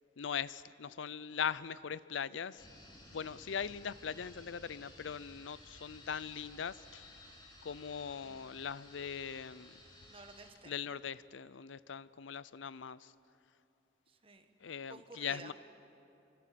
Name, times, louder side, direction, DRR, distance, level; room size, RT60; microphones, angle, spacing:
voice 1, 0.2-2.6 3.1-7.1 7.6-9.8 10.7-13.1 14.6-15.5, left 7 dB, 80° left, 18 dB, 0.5 m, -40 dB
sound 1, 2.6-10.5, left 1 dB, 20° left, 3.5 m, -56 dB
voice 2, 8.2-8.6 10.1-10.8 14.1-15.5, right 3 dB, 30° right, 6 dB, 1.4 m, -53 dB
27.0 x 25.0 x 7.6 m, 2.8 s
head